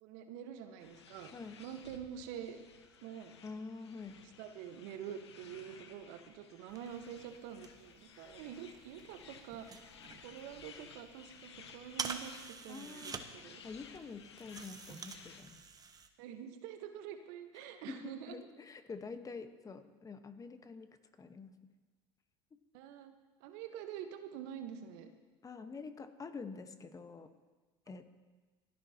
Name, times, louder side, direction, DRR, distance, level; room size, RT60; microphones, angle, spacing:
voice 1, 0.0-1.3 1.6-2.6 3.0-3.3 4.1-9.9 10.2-13.6 16.2-18.5 22.7-23.1 23.4-25.1, right 9 dB, 65° right, 7 dB, 1.3 m, -46 dB
sound 1, 0.8-15.5, left 6 dB, 90° left, 1.1 m, -57 dB
voice 2, 1.3-1.6 3.4-4.1 12.7-13.2 13.6-15.6 17.9-18.0 18.3-20.9 21.2-21.5 25.4-27.3 27.9-28.0, left 4 dB, 25° left, 9 dB, 1.3 m, -47 dB
sound 2, 6.7-16.1, right 5 dB, 25° right, 1.1 m, -48 dB
28.0 x 10.0 x 3.0 m, 1.3 s
hypercardioid pair, 80°, 14 cm